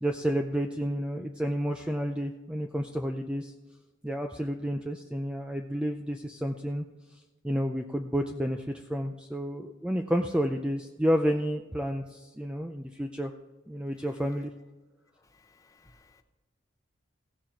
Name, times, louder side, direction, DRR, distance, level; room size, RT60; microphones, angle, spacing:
voice 1, 0.0-3.5 4.0-6.9 7.4-13.3 13.7-14.5, equal, 5° right, 0.4 m, -30 dB
voice 2, 15.3-16.2, left 3 dB, 15° left, 0.9 m, -61 dB
16.0 x 7.3 x 4.5 m
head